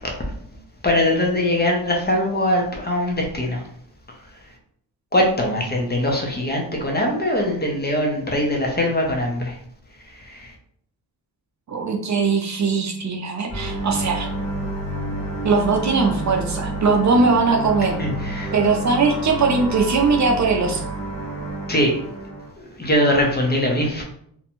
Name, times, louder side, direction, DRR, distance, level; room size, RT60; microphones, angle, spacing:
voice 1, 0.8-3.6 5.1-9.4 18.0-18.5 21.7-21.9 22.8-24.0, left 1 dB, 25° left, 0 dB, 0.6 m, -21 dB
voice 2, 11.7-14.3 15.4-18.0 18.5-20.9, right 4 dB, 45° right, 2 dB, 0.5 m, -20 dB
sound 1, 13.5-22.5, right 1 dB, 55° left, 1.3 m, -29 dB
2.6 x 2.1 x 2.9 m, 0.67 s
wide cardioid pair, 105°, 39 cm